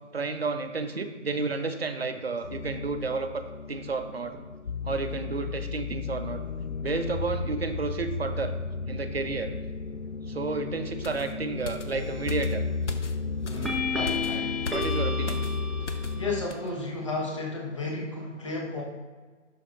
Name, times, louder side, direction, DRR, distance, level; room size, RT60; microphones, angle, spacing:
voice 1, 0.1-4.4 4.8-6.4 6.8-8.6 8.9-9.5 10.3-12.6 14.7-15.4, right 4 dB, 50° right, 9 dB, 0.7 m, -31 dB
sound 1, 2.4-16.5, left 4 dB, 90° left, 0.6 m, -34 dB
sound 2, 11.0-16.2 16.5-16.7, left 3 dB, 65° left, 0.9 m, -39 dB
sound 3, 11.9-12.4 13.6-16.4, left 4 dB, ahead, 0.4 m, -32 dB
voice 2, 13.4-14.5 16.1-18.8, left 3 dB, 25° left, -2 dB, 1.1 m, -33 dB
11.0 x 6.4 x 2.5 m, 1.4 s
figure-of-eight pair, 160°, 38 cm